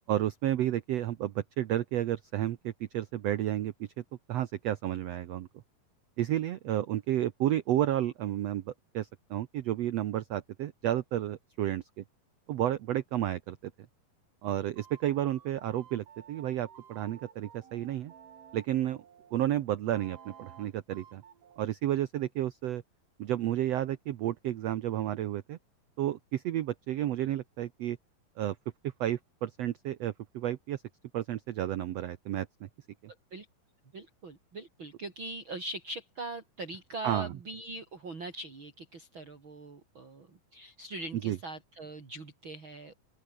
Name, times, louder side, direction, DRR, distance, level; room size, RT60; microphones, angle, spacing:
voice 1, 0.1-3.9 4.3-5.5 6.2-12.0 12.5-13.7 14.4-18.1 18.5-19.0 19.3-21.2 21.6-22.8 23.2-25.6 26.0-28.0 28.4-28.6 29.0-30.8 31.1-32.7 37.0-37.3 41.2-41.4, right 12 dB, 85° right, 1.4 m, -31 dB
sound 1, 14.8-19.3 19.9-21.7, right 8 dB, 65° right, 4.1 m, -54 dB
voice 2, 33.9-42.9, right 2 dB, 35° right, 4.1 m, -42 dB
open air
omnidirectional pair, 4.2 m